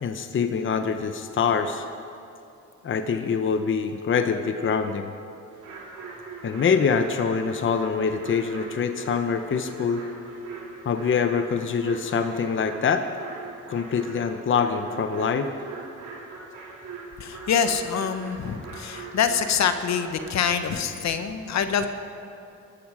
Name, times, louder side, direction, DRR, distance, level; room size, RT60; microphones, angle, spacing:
voice 1, 0.0-1.9 2.8-5.1 6.4-10.0 10.8-13.1 13.7-15.5, left 6 dB, 40° left, 7 dB, 0.9 m, -25 dB
sound 1, 5.5-20.6, right 4 dB, 75° right, 3.2 m, -41 dB
voice 2, 17.2-21.9, left 7 dB, 65° left, 9 dB, 1.1 m, -25 dB
20.0 x 13.0 x 4.9 m, 2.7 s
cardioid pair, 90°, 30 cm